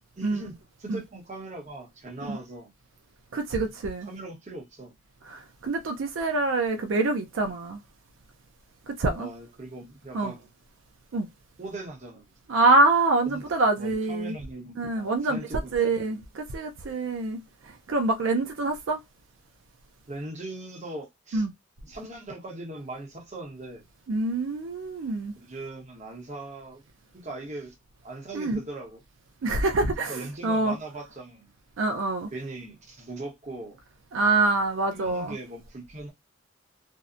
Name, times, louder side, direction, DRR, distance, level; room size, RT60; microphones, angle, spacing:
voice 1, 0.0-2.7 4.0-4.9 9.2-10.4 11.6-12.3 13.3-13.4 13.8-16.2 20.1-21.4 21.9-23.8 25.0-25.1 25.4-26.8 27.1-27.8 28.0-29.0 29.6-29.7 30.1-31.5 32.3-33.8 34.9-36.1, right 2 dB, 40° right, 0.9 m, -40 dB
voice 2, 3.3-4.1 5.2-7.8 8.9-9.3 10.1-10.3 11.1-11.3 12.5-14.3 14.8-15.4 15.7-19.0 21.3-21.5 24.1-25.3 28.3-28.6 29.4-30.8 31.8-32.3 34.1-35.4, right 3 dB, 80° right, 0.4 m, -25 dB
2.7 x 2.1 x 2.4 m
head